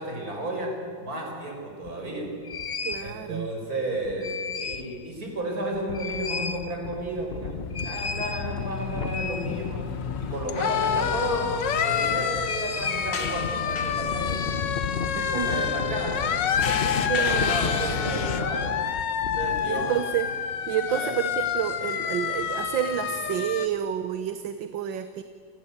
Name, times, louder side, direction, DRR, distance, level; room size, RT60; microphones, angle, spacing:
voice 1, 0.0-2.3 3.0-7.5 7.8-11.5 11.8-14.6 15.1-18.7 19.4-20.0 20.9-21.1, right 1 dB, 50° right, 1 dB, 5.9 m, -32 dB
sound 1, 1.8-1.9 2.4-3.1 3.9-5.0 5.3-5.4 5.7-19.6, left 5 dB, 35° left, 1.1 m, -33 dB
voice 2, 2.8-3.5 12.1-12.2 15.1-15.6 17.1-17.6 19.6-20.3 20.7-25.2, right 10 dB, 75° right, 11 dB, 1.6 m, -29 dB
sound 2, 7.2-23.7, left 8 dB, 70° left, 1.8 m, -29 dB
29.0 x 20.0 x 8.6 m, 2.2 s
omnidirectional pair, 2.1 m